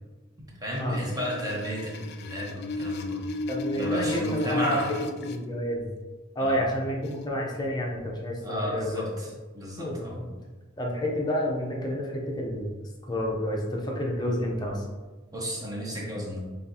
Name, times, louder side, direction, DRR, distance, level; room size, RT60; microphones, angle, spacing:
voice 1, 0.4-3.3 3.8-4.9 6.4-6.6 8.4-10.2 15.3-16.4, equal, 20° right, -3 dB, 0.9 m, -33 dB
sound 1, 0.7-5.4 7.0-7.3, left 2 dB, 50° left, 0.3 m, -33 dB
voice 2, 3.5-4.8 5.2-5.8 6.4-9.1 9.8-10.2 10.8-12.7 13.1-14.8, left 1 dB, 20° left, -2 dB, 0.7 m, -29 dB
4.4 x 3.4 x 2.8 m, 1.2 s
head